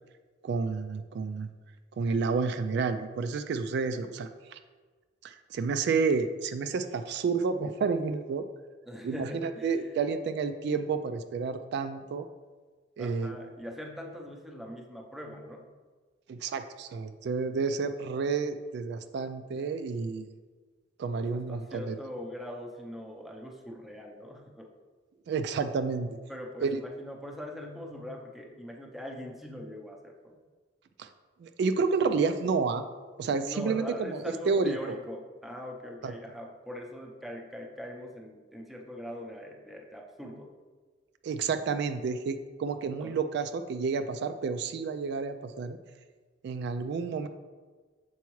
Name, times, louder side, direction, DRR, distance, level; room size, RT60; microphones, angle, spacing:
voice 1, 0.4-1.5 2.0-4.6 5.2-8.4 9.0-12.3 13.0-13.3 16.3-20.3 21.0-21.9 25.3-26.2 26.6-26.8 31.0-31.1 31.4-32.8 33.2-35.0 36.0-36.1 41.2-45.8 46.4-47.3, right 5 dB, 65° right, 9 dB, 0.3 m, -30 dB
voice 2, 8.9-9.8 13.0-15.7 21.2-24.7 26.3-30.4 32.1-32.5 33.4-40.5 43.0-43.2, left 1 dB, ahead, 0 dB, 0.6 m, -42 dB
6.9 x 4.6 x 3.1 m, 1.4 s
head